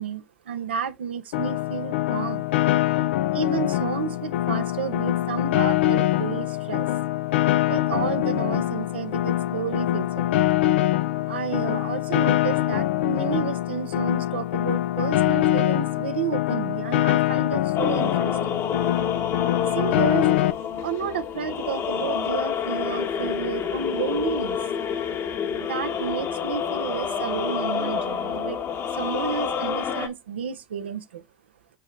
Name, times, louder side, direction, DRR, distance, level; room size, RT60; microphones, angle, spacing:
voice 1, 0.0-2.5 3.3-6.9 7.7-10.4 11.3-18.6 19.7-20.3 20.8-24.6 25.6-28.6 28.9-31.2, right 7 dB, 85° right, 0.8 m, -31 dB
Piano, 1.3-20.5, left 14 dB, 80° left, 0.4 m, -24 dB
sound 1, 17.7-30.1, left 7 dB, 50° left, 1.3 m, -28 dB
8.8 x 3.1 x 3.9 m
hypercardioid pair, 70°, 6 cm